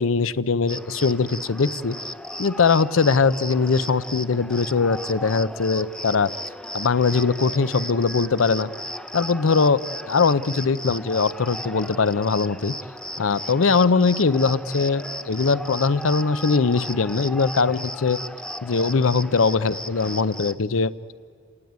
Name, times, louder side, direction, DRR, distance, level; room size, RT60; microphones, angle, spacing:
voice 1, 0.0-2.0 2.4-6.3 6.7-8.7 9.1-9.8 10.1-12.7 13.2-18.2 18.6-20.9, left 4 dB, 75° left, 18 dB, 0.6 m, -21 dB
Cricket, 0.7-20.6, left 1 dB, 5° left, 0.6 m, -35 dB
29.5 x 18.5 x 9.4 m, 2.3 s
head